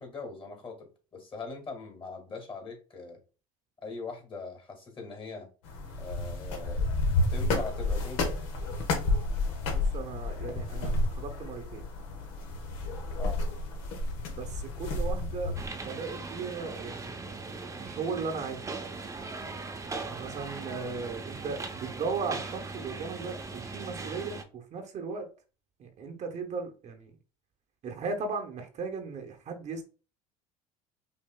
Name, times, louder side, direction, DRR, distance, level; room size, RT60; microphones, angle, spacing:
voice 1, 0.0-3.2 3.8-5.5 6.0-6.9 7.3-8.3 13.2-13.4, left 3 dB, 30° left, 3 dB, 1.9 m, -41 dB
sound 1, 5.6-15.7, left 2 dB, 75° left, 1.1 m, -31 dB
voice 2, 9.7-11.8 14.3-18.7 19.9-25.3 25.8-27.1 27.8-29.8, right 4 dB, 45° right, 4 dB, 0.9 m, -37 dB
sound 2, 15.6-24.4, right 3 dB, 20° right, 0.6 m, -39 dB
5.4 x 2.6 x 2.2 m, 0.35 s
supercardioid pair, 85°, 16 cm